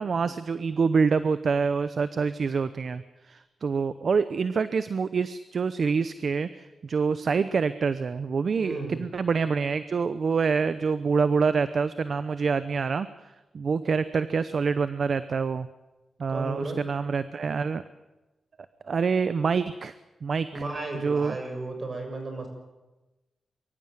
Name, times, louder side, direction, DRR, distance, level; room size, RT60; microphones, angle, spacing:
voice 1, 0.0-13.1 13.5-15.7 16.2-17.8 18.8-19.9 20.2-20.6 21.0-21.4, right 5 dB, 60° right, 13 dB, 0.8 m, -26 dB
voice 2, 8.6-9.0 16.3-16.8 20.5-22.5, right 2 dB, 45° right, 4 dB, 7.0 m, -34 dB
23.5 x 14.0 x 9.3 m, 1.1 s
cardioid pair, 65°, 0 cm